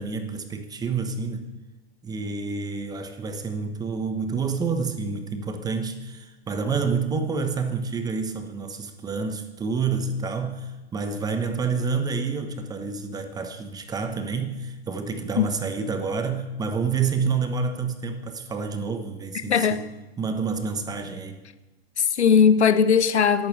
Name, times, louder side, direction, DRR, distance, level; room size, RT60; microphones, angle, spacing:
voice 1, 0.0-1.5 2.0-19.9 20.2-21.4, right 5 dB, 10° right, 1.1 m, -28 dB
voice 2, 19.5-19.9 22.0-23.5, left 6 dB, 90° left, 1.2 m, -19 dB
12.0 x 10.5 x 8.0 m
hypercardioid pair, 135°, 33 cm